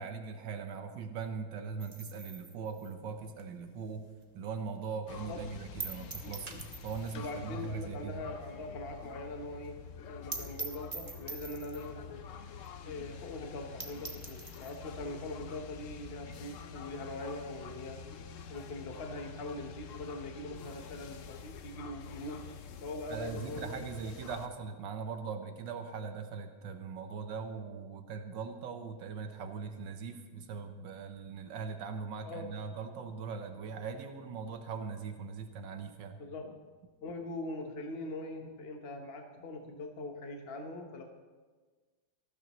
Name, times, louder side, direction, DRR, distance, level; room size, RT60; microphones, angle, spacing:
voice 1, 0.0-4.1 4.3-8.2 23.1-36.2, right 5 dB, 90° right, 6 dB, 1.7 m, -40 dB
sound 1, 1.8-4.4 4.8-4.9 5.2-5.3 5.8-7.2 7.5-7.6 7.9-8.0 8.4-8.5 8.7-8.8 9.1-9.2 9.5-9.6 9.9-10.0 10.3-12.0 12.6-12.7 13.1-13.2 13.5-13.6 13.8-14.8, right 3 dB, 30° right, 0.9 m, -44 dB
sound 2, 5.1-24.5, left 6 dB, 60° left, 0.8 m, -47 dB
voice 2, 7.1-9.7 10.1-12.2 12.8-18.0 18.5-22.4 22.8-24.1 32.3-32.5 36.2-36.6 37.0-41.0, left 2 dB, 40° left, 3 dB, 1.1 m, -42 dB
19.0 x 15.0 x 3.1 m, 1.4 s
omnidirectional pair, 1.9 m